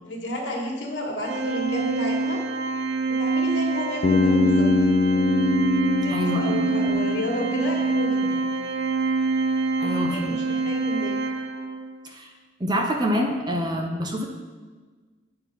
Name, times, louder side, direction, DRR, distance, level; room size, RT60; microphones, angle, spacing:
voice 1, 0.0-2.4 3.1-4.7 6.0-8.4 9.8-11.2, equal, 70° left, -2 dB, 1.7 m, -31 dB
Organ, 1.2-12.0, right 3 dB, 70° right, 0.6 m, -26 dB
Bass guitar, 4.0-8.0, left 3 dB, 40° left, 0.3 m, -23 dB
voice 2, 6.1-6.9 9.8-10.4 12.0-12.3 12.6-14.2, equal, 20° right, 2 dB, 0.6 m, -27 dB
8.8 x 4.6 x 5.4 m, 1.4 s
head